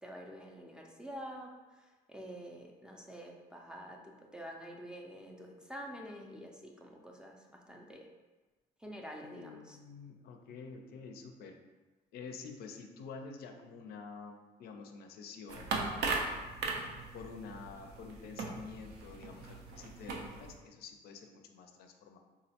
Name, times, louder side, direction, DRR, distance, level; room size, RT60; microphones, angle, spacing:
voice 1, 0.0-1.5 1.8-8.0 8.8-9.8, equal, 5° right, -1 dB, 0.3 m, -47 dB
voice 2, 9.2-11.6 12.1-16.5 17.1-22.2, left 5 dB, 65° left, 4 dB, 0.4 m, -49 dB
sound 1, 15.5-20.5, right 3 dB, 80° right, 0.5 m, -38 dB
3.7 x 2.1 x 2.7 m, 1.2 s
cardioid pair, 110°, 17 cm